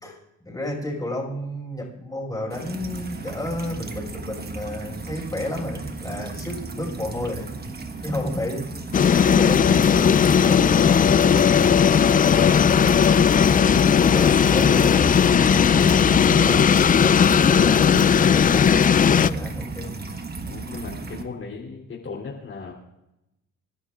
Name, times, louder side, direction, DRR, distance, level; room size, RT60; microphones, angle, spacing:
voice 1, 0.0-8.7 9.0-13.1 13.7-20.1, left 1 dB, 10° left, -2 dB, 5.6 m, -32 dB
sound 1, 2.5-21.2, right 3 dB, 30° right, 1.4 m, -34 dB
sound 2, 8.9-19.3, left 7 dB, 30° left, 0.4 m, -17 dB
voice 2, 20.5-22.7, left 5 dB, 45° left, -4 dB, 3.3 m, -37 dB
28.0 x 11.0 x 2.5 m, 0.91 s
cardioid pair, 90°, 30 cm